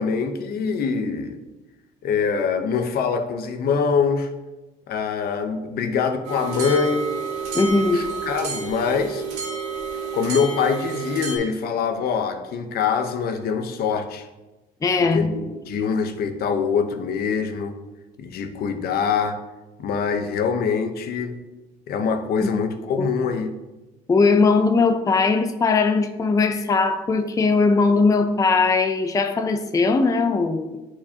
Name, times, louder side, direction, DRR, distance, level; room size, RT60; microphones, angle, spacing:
voice 1, 0.0-1.4 2.0-4.3 4.9-7.1 7.6-9.2 10.1-14.3 15.0-17.8 18.2-19.4 19.8-21.4 21.9-23.5, left 6 dB, 65° left, 7 dB, 0.8 m, -24 dB
sound 1, 6.2-11.4, right 5 dB, 90° right, 2.5 m, -30 dB
voice 2, 7.5-8.0 14.8-15.3 23.0-23.1 24.1-30.8, left 4 dB, 20° left, 6 dB, 0.5 m, -19 dB
11.0 x 4.4 x 2.8 m, 1.1 s
cardioid pair, 110°, 17 cm